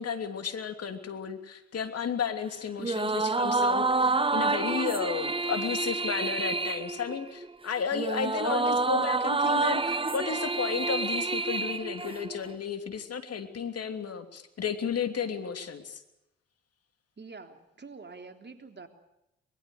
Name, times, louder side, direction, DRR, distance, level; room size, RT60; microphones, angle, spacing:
voice 1, 0.0-16.0, left 6 dB, 55° left, 7 dB, 3.1 m, -33 dB
sound 1, 2.8-12.5, right 3 dB, 20° right, 1.0 m, -28 dB
voice 2, 17.2-18.9, right 4 dB, 35° right, 6 dB, 3.5 m, -46 dB
24.0 x 21.5 x 6.8 m, 0.86 s
hypercardioid pair, 50°, 30 cm